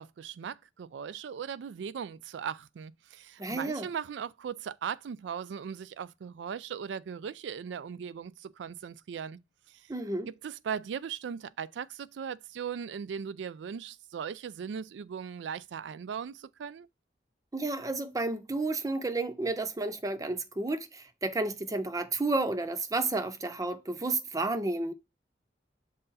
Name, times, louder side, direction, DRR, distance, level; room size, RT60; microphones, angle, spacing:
voice 1, 0.0-9.4 9.7-9.9 10.3-16.9, right 7 dB, 85° right, 0.3 m, -38 dB
voice 2, 3.4-3.9 9.9-10.3 17.5-24.9, right 2 dB, 20° right, 0.6 m, -31 dB
6.6 x 3.8 x 4.1 m
head